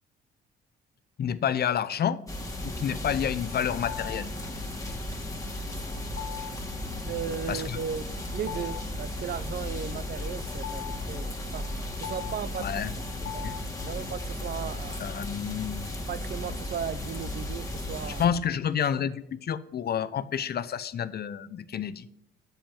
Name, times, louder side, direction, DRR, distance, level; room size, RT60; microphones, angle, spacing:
voice 1, 1.2-2.2 2.6-4.3 7.5-7.8 12.6-12.9 13.4-13.5 15.0-15.9 18.1-22.1, left 8 dB, 55° left, 0.8 m, -29 dB
sound 1, 2.3-18.3, left 1 dB, 15° left, 2.4 m, -35 dB
sound 2, 3.5-14.2, left 11 dB, 85° left, 1.2 m, -44 dB
voice 2, 7.1-8.1 8.3-11.7 12.0-12.9 13.2-13.5 13.8-15.0 16.1-18.2, right 8 dB, 55° right, 0.7 m, -36 dB
8.8 x 7.3 x 8.8 m
cardioid pair, 90°, 20 cm